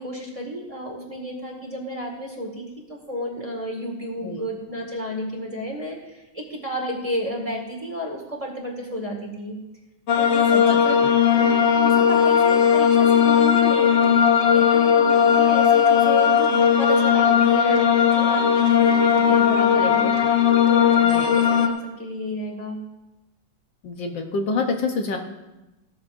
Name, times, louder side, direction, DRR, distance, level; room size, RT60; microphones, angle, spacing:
voice 1, 0.0-9.6 10.1-11.0 11.3-20.1 20.6-22.8, equal, 15° right, -1 dB, 1.8 m, -32 dB
sound 1, 10.1-21.7, left 8 dB, 55° left, 0.8 m, -17 dB
voice 2, 23.8-25.2, left 4 dB, 70° left, 4 dB, 1.7 m, -26 dB
17.0 x 13.0 x 2.6 m, 1.0 s
omnidirectional pair, 2.2 m